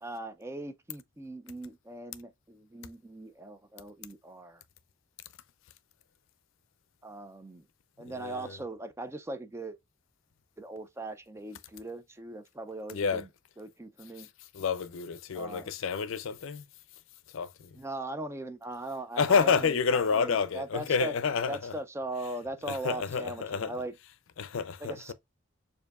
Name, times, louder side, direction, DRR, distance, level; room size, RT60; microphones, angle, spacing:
voice 1, 0.0-4.6 7.0-7.7 8.0-9.8 10.6-13.3 13.6-14.3 15.3-15.7 17.7-21.1 21.5-23.9 24.8-25.1, right 2 dB, 15° right, 0.3 m, -39 dB
voice 2, 8.1-8.5 12.9-13.2 14.2-14.3 14.5-16.6 17.3-17.7 19.2-21.7 22.6-23.7 24.4-25.1, left 5 dB, 70° left, 0.4 m, -29 dB
6.8 x 2.6 x 2.3 m
head